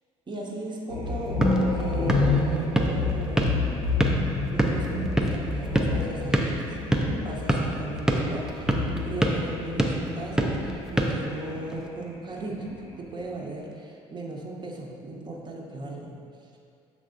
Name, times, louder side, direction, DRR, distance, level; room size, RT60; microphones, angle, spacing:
voice 1, 0.3-3.6 4.5-6.8 7.2-12.7 13.0-16.6, right 2 dB, 25° right, -1 dB, 0.7 m, -36 dB
sound 1, 0.9-11.7 12.0-13.2, left 3 dB, 75° left, 0.7 m, -29 dB
sound 2, 1.1-11.9, right 1 dB, 5° right, 0.4 m, -28 dB
6.4 x 3.3 x 2.5 m, 2.4 s
figure-of-eight pair, 55°, 17 cm